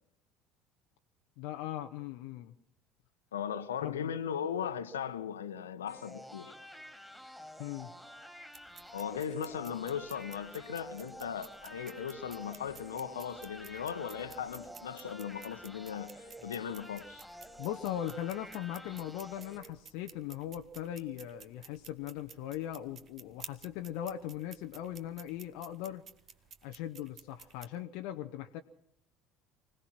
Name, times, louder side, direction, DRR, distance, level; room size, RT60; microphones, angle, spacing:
voice 1, 1.4-2.5 3.8-4.2 7.6-7.9 17.6-26.0 26.6-28.6, left 11 dB, 60° left, 0.9 m, -39 dB
voice 2, 3.3-6.5 8.9-17.2, left 8 dB, 75° left, 1.2 m, -38 dB
sound 1, 5.9-19.6, equal, ahead, 4.0 m, -50 dB
sound 2, 8.5-27.7, right 7 dB, 40° right, 1.5 m, -55 dB
25.0 x 18.0 x 6.0 m
figure-of-eight pair, 60°, 0 cm